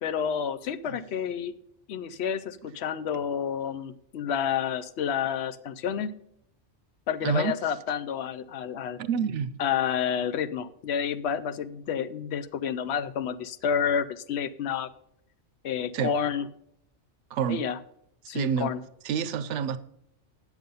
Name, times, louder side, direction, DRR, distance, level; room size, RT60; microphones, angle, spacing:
voice 1, 0.0-1.5 1.9-6.1 7.1-9.0 9.6-14.9 15.6-16.5 17.5-17.8 18.3-18.8, left 8 dB, 65° left, 0.8 m, -29 dB
voice 2, 7.2-7.5 9.0-9.5 15.9-16.1 17.3-17.6 18.3-18.7 19.0-19.8, right 7 dB, 75° right, 0.9 m, -28 dB
9.1 x 7.2 x 5.4 m
omnidirectional pair, 1.3 m